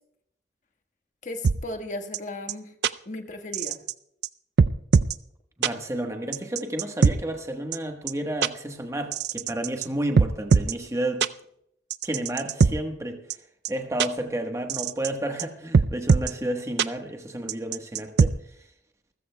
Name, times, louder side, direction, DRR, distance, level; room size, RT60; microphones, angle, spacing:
voice 1, 1.2-2.7 3.0-3.8, left 1 dB, 45° left, 1.4 m, -36 dB
sound 1, 1.4-1.6 2.1-2.2 2.5-2.6 2.8-2.9 3.5-3.9 4.2-4.3 4.6-5.1 5.6-5.7 6.3-7.1 7.7-7.8 8.1-8.2 8.4-8.5 9.1-9.9 10.2-10.7 11.2-11.3 11.9-12.7 13.3-13.4 13.6-13.7 14.0-14.1 14.7-15.1 15.4-15.5 15.7-16.3 16.8-16.9 17.5-18.3, right 5 dB, 65° right, 0.4 m, -20 dB
voice 2, 5.6-11.2 12.0-13.2 13.7-18.3, right 1 dB, 15° right, 1.2 m, -31 dB
27.5 x 15.0 x 2.2 m
head